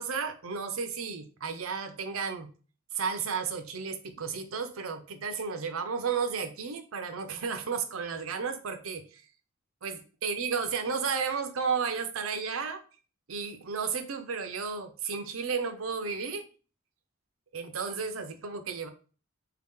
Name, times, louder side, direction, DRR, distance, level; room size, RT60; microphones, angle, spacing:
voice 1, 0.0-2.5 2.9-9.2 9.8-12.8 13.3-16.5 17.5-18.9, right 5 dB, 85° right, 0.7 m, -33 dB
4.1 x 2.8 x 3.6 m
head